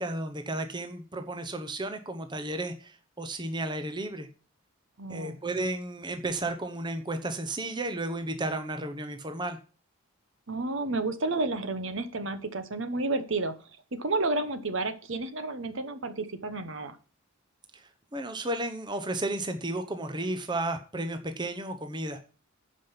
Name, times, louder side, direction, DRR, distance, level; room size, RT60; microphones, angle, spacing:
voice 1, 0.0-4.3 5.1-9.6 17.7-22.3, right 1 dB, 20° right, 7 dB, 0.8 m, -33 dB
voice 2, 5.0-5.3 10.5-13.5 13.9-17.0, right 2 dB, 60° right, 10 dB, 1.1 m, -31 dB
11.5 x 5.3 x 5.7 m, 0.37 s
head